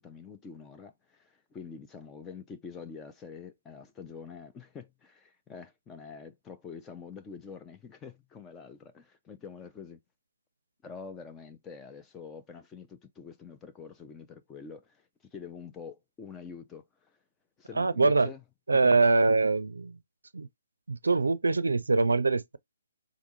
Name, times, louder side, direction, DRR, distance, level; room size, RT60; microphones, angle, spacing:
voice 1, 0.0-10.0 10.8-17.2 17.6-18.4 18.7-19.0, left 5 dB, 15° left, 0.5 m, -46 dB
voice 2, 17.8-18.3 18.7-20.0 20.3-20.5 20.9-22.6, right 3 dB, 80° right, 0.4 m, -24 dB
3.6 x 3.6 x 2.7 m
figure-of-eight pair, 140°, 0 cm